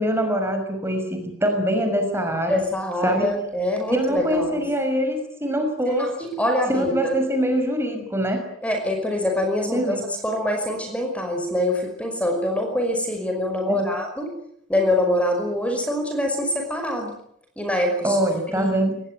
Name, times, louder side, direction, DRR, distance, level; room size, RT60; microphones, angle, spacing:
voice 1, 0.0-2.6 3.0-3.3 3.9-6.3 6.7-8.4 9.7-10.0 13.7-14.0 18.0-19.0, equal, 10° right, 5 dB, 5.9 m, -23 dB
voice 2, 2.5-4.6 5.9-7.2 8.6-9.9 10.2-14.3 14.7-17.1 17.6-18.2 18.5-18.8, left 1 dB, 5° left, 4 dB, 5.6 m, -24 dB
28.5 x 21.0 x 9.3 m, 0.70 s
head